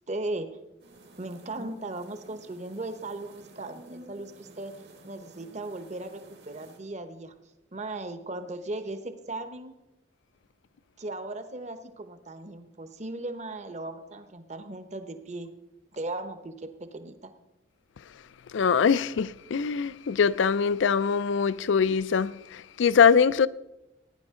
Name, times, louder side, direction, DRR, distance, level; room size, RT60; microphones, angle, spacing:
voice 1, 0.1-0.5 1.2-4.7 5.0-7.3 7.7-9.7 11.0-15.5 15.9-17.3, right 2 dB, 35° right, 0.9 m, -37 dB
sound 1, 0.8-6.8, right 2 dB, 60° right, 1.8 m, -51 dB
voice 2, 18.5-23.5, left 6 dB, 75° left, 0.4 m, -23 dB
16.5 x 9.8 x 3.7 m
head